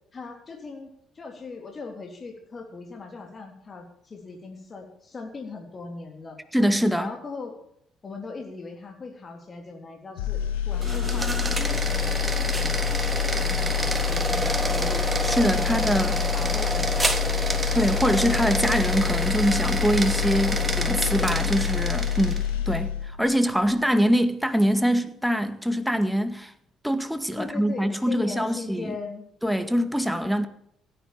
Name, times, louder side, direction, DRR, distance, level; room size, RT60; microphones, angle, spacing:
voice 1, 0.1-6.4 7.0-7.6 8.0-10.4 10.7-12.9 13.3-15.0 15.4-17.4 20.2-21.0 22.1-22.6 27.4-29.3, left 4 dB, 40° left, 3.6 m, -39 dB
voice 2, 6.5-7.1 15.2-16.2 17.7-22.4 22.7-26.5 26.8-28.9 29.4-30.5, equal, ahead, 2.0 m, -24 dB
sound 1, 10.2-23.3 23.6-23.8, left 10 dB, 80° left, 1.7 m, -27 dB
sound 2, 10.7-22.5, right 2 dB, 20° right, 3.1 m, -29 dB
16.5 x 10.0 x 7.3 m
hypercardioid pair, 50°, 0 cm